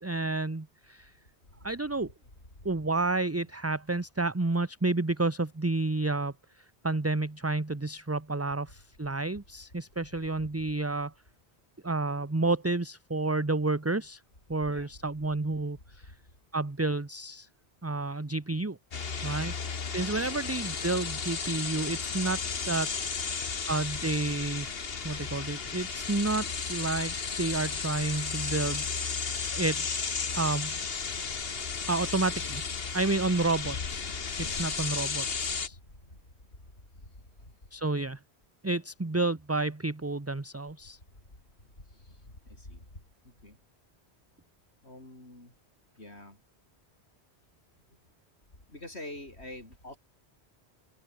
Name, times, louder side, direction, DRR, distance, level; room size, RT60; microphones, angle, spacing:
voice 1, 0.0-1.1 1.6-2.1 2.6-6.3 6.8-11.1 11.8-14.2 14.5-16.1 16.5-17.5 17.8-18.8 19.2-19.5 19.9-24.7 25.0-29.8 30.3-30.8 31.9-32.6 32.9-35.8 37.7-38.2 38.6-41.0, right 2 dB, 15° right, 0.8 m, -30 dB
cicadas & wind, 18.9-35.7, left 5 dB, 65° left, 1.6 m, -34 dB
voice 2, 42.5-42.8 43.4-43.6 44.8-45.5 46.0-46.4 48.7-50.0, left 1 dB, 90° left, 8.0 m, -45 dB
open air
omnidirectional pair, 1.1 m